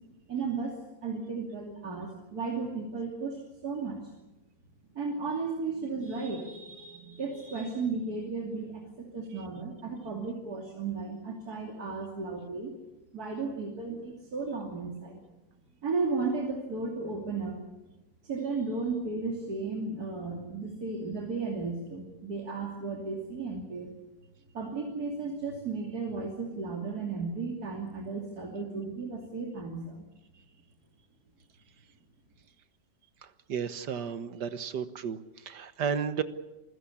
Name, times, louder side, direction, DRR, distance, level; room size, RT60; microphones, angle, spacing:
voice 1, 0.3-4.1 4.9-12.7 13.1-15.2 15.8-17.6 18.2-23.9 24.5-30.0, right 4 dB, 60° right, 1 dB, 3.3 m, -34 dB
voice 2, 33.2-36.2, right 7 dB, 80° right, 11 dB, 1.8 m, -33 dB
27.5 x 16.0 x 8.5 m, 1.1 s
omnidirectional pair, 1.8 m